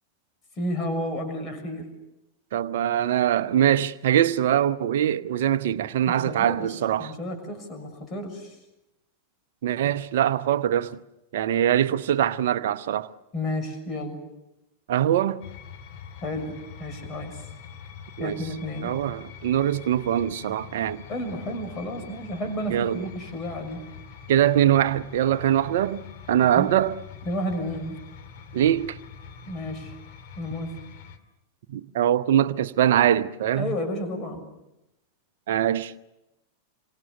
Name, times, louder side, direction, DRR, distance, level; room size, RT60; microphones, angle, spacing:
voice 1, 0.6-1.9 6.1-6.7 7.0-8.6 13.3-14.2 16.2-17.4 18.2-18.9 21.1-23.8 26.5-26.7 27.2-28.0 29.5-30.0 30.4-30.7 33.5-34.5, left 1 dB, 25° left, 6.5 m, -31 dB
voice 2, 2.5-7.1 9.6-11.0 11.3-13.1 14.9-15.4 18.2-18.4 18.8-21.0 22.7-23.1 24.3-26.9 28.5-29.0 31.7-33.7 35.5-36.0, right 11 dB, 55° right, 0.9 m, -23 dB
sound 1, 15.4-31.2, left 7 dB, 45° left, 2.4 m, -44 dB
27.5 x 24.5 x 6.9 m
figure-of-eight pair, 90°, 0 cm